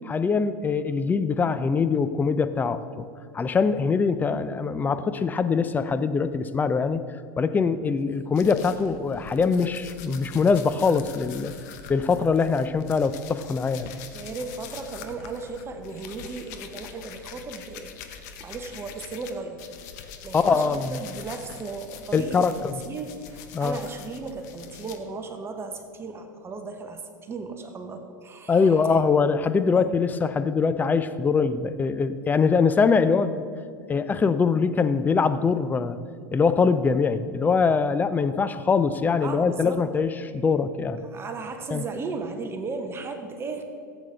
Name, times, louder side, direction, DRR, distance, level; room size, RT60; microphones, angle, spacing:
voice 1, 0.0-3.1 3.3-7.0 7.4-11.5 11.9-13.9 20.3-21.0 22.1-22.7 23.5-23.8 28.5-33.4 33.9-36.0 36.3-41.0 41.7-41.8, left 5 dB, 15° left, 12 dB, 0.5 m, -23 dB
sound 1, 8.3-19.3 19.6-25.0, left 7 dB, 55° left, 0.9 m, -44 dB
voice 2, 14.1-19.7 20.2-29.0 29.7-29.9 39.2-39.8 41.0-43.6, right 4 dB, 25° right, 6 dB, 0.9 m, -36 dB
15.0 x 8.0 x 3.3 m, 2.3 s
hypercardioid pair, 90°, 11 cm